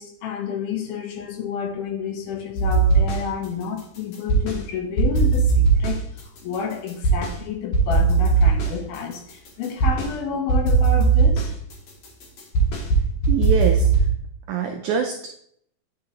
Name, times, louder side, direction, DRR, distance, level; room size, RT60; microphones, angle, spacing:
voice 1, 0.0-11.5, left 6 dB, 80° left, 2.6 m, -30 dB
sound 1, 2.6-3.5 3.8-4.7 5.0-7.4 7.7-10.1 10.5-14.1, right 4 dB, 60° left, 2.2 m, -19 dB
voice 2, 13.3-13.9 14.5-15.4, right 6 dB, 90° right, 1.7 m, -24 dB
9.6 x 4.9 x 2.9 m
omnidirectional pair, 4.2 m